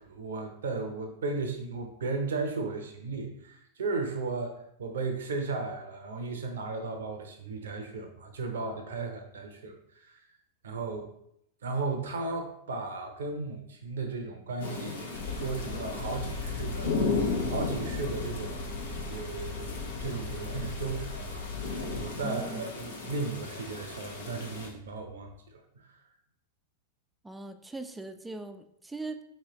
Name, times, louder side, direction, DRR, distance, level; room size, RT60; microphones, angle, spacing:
voice 1, 0.0-10.3 10.6-11.1 11.6-18.7 19.0-26.0, right 3 dB, 75° right, 4 dB, 0.6 m, -35 dB
sound 1, 14.6-24.7, left 4 dB, 80° left, 0.9 m, -36 dB
sound 2, 15.1-22.1, left 3 dB, 50° left, 1.0 m, -38 dB
voice 2, 22.2-22.6 27.2-29.2, right 3 dB, 10° right, 8 dB, 0.4 m, -40 dB
4.5 x 3.2 x 2.9 m, 0.75 s
hypercardioid pair, 100°, 0 cm